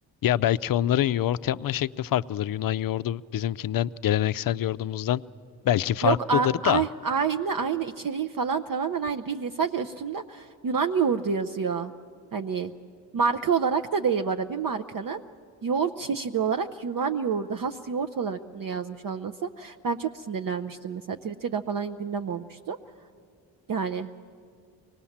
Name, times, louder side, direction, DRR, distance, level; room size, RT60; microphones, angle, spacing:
voice 1, 0.2-5.2 5.6-6.8, left 12 dB, 50° left, 14 dB, 0.5 m, -25 dB
voice 2, 6.0-11.9 12.3-12.7 13.1-15.2 15.6-22.8 23.7-24.1, right 6 dB, 45° right, 6 dB, 0.7 m, -28 dB
24.5 x 19.5 x 7.2 m, 2.3 s
supercardioid pair, 60°, 45 cm